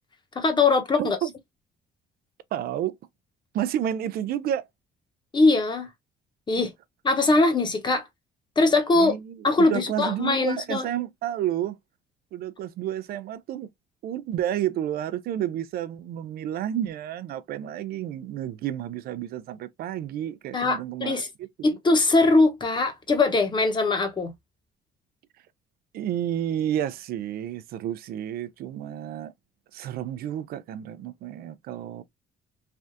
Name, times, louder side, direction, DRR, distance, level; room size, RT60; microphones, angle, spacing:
voice 1, 0.3-1.2 5.3-5.9 6.5-6.7 7.0-8.0 8.6-9.1 9.4-10.8 20.5-21.3 21.6-24.3, left 3 dB, 25° left, 1.0 m, -21 dB
voice 2, 1.0-1.3 2.5-3.0 3.5-4.7 8.9-11.8 12.3-13.7 14.0-21.8 25.9-29.3 29.7-32.0, right 11 dB, 65° right, 0.4 m, -30 dB
3.3 x 2.4 x 2.6 m
cardioid pair, 110°, 17 cm